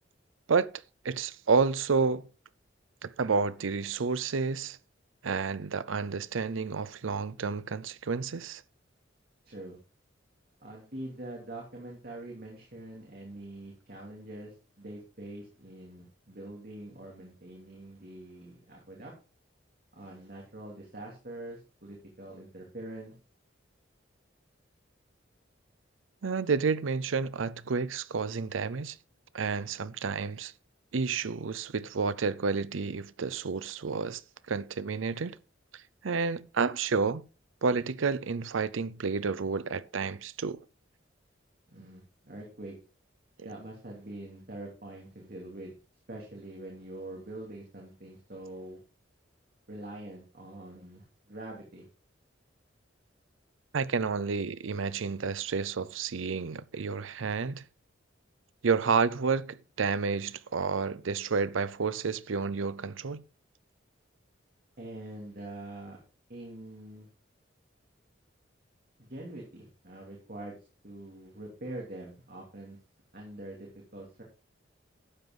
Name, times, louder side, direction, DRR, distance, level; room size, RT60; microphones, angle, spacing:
voice 1, 1.0-2.3 3.0-4.8 5.2-8.6 26.2-29.0 29.3-30.5 30.9-34.2 34.5-35.4 35.7-37.2 37.6-40.6 43.4-43.5 53.7-57.6 58.6-63.2, right 5 dB, 85° right, 0.6 m, -30 dB
voice 2, 9.4-9.8 10.6-19.1 19.9-23.1 41.7-42.8 43.4-45.7 46.1-48.8 49.7-51.9 64.8-66.0 66.3-67.1 69.0-70.6 70.8-72.8 73.1-74.2, right 1 dB, 50° right, 3.0 m, -44 dB
12.0 x 7.9 x 3.8 m
head